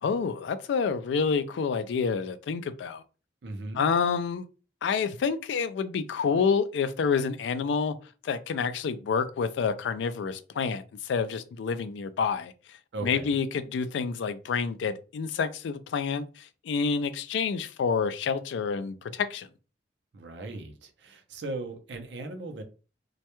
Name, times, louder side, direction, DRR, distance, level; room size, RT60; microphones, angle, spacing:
voice 1, 0.0-3.0 3.7-4.4 4.8-7.9 8.2-19.5, left 5 dB, 85° left, 0.3 m, -28 dB
voice 2, 3.4-3.8 12.9-13.4 20.1-22.6, right 2 dB, 80° right, 0.5 m, -38 dB
2.2 x 2.1 x 2.9 m
head